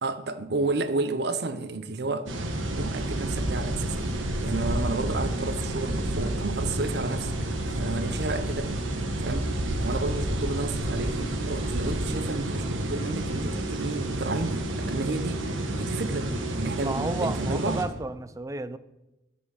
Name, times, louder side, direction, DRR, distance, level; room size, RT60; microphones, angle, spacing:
voice 1, 0.0-2.3 2.8-4.2 4.4-7.3 7.6-8.7 9.2-9.5 9.8-15.5 15.8-16.3 16.6-17.8, right 3 dB, 55° right, 0.7 m, -31 dB
sound 1, 2.3-17.9, right 1 dB, 85° right, 1.2 m, -30 dB
voice 2, 16.8-18.8, right 2 dB, 15° right, 0.3 m, -32 dB
9.8 x 5.4 x 7.3 m
head